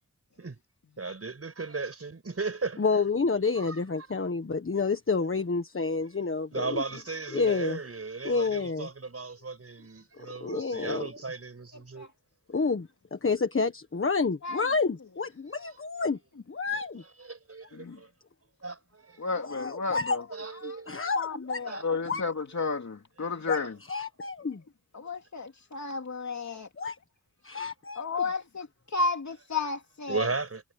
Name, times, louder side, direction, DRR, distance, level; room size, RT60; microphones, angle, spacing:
voice 1, 1.0-2.9 3.6-3.8 6.5-12.1 16.7-16.8 17.3-18.1 18.6-19.3 20.3-21.0 21.7-21.8 23.5-23.7 27.6-27.7 30.1-30.6, right 4 dB, 45° right, 6.0 m, -36 dB
voice 2, 2.8-6.8 7.3-7.8 8.2-8.9 10.2-11.1 12.5-16.2 16.5-17.0 19.4-20.2 20.9-21.6 22.0-22.2 23.5-23.6 23.9-24.6 26.8-27.0 27.4-28.3, left 4 dB, 40° left, 1.5 m, -29 dB
voice 3, 19.2-20.2 20.9-23.7 24.9-26.7 28.0-30.3, left 4 dB, 60° left, 2.9 m, -32 dB
wide cardioid pair, 70°, 32 cm